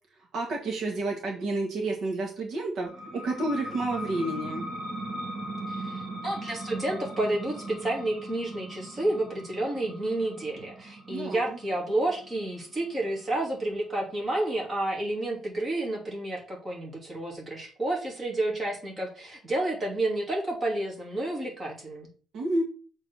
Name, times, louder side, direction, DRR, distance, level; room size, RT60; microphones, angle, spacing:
voice 1, 0.3-4.6 11.1-11.4 22.3-22.6, right 2 dB, 60° right, 0 dB, 1.6 m, -30 dB
sound 1, 2.8-14.1, right 1 dB, 45° right, 2.3 m, -39 dB
voice 2, 5.7-22.1, right 1 dB, 25° right, -3 dB, 2.9 m, -30 dB
7.0 x 4.0 x 6.1 m, 0.40 s
cardioid pair, 165°, 0 cm